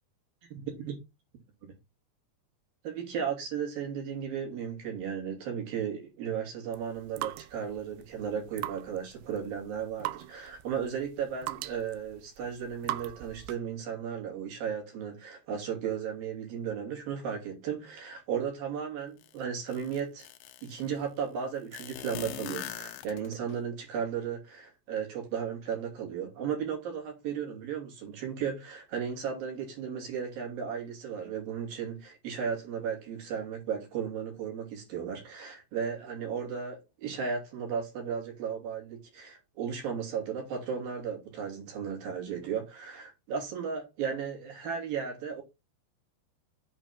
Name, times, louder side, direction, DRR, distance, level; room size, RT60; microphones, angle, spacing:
voice 1, 0.5-0.9 2.8-20.3 20.6-45.4, right 7 dB, 55° right, 4.5 m, -35 dB
sound 1, 6.7-13.7, right 16 dB, 80° right, 2.6 m, -41 dB
sound 2, 19.2-19.3 19.7-20.8 21.7-23.5, left 12 dB, 75° left, 2.1 m, -41 dB
8.2 x 5.0 x 5.9 m
omnidirectional pair, 5.0 m